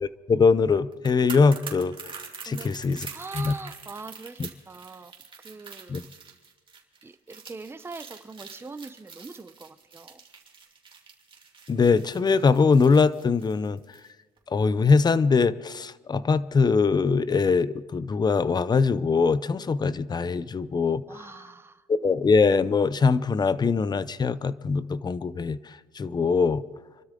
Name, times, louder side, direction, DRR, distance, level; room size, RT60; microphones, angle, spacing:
voice 1, 0.0-2.0 2.4-3.1 3.3-3.5 4.4-4.5 5.9-6.0 11.7-13.8 14.5-21.0 21.9-26.6, left 4 dB, 25° left, 17 dB, 0.6 m, -22 dB
sound 1, 0.9-14.1 14.4-14.5, right 5 dB, 30° right, 2.7 m, -44 dB
voice 2, 2.5-5.1 5.4-6.0 7.0-10.2 21.1-21.9, right 4 dB, 15° right, 10 dB, 0.8 m, -42 dB
27.0 x 13.0 x 3.8 m, 1.4 s
cardioid pair, 110°, 17 cm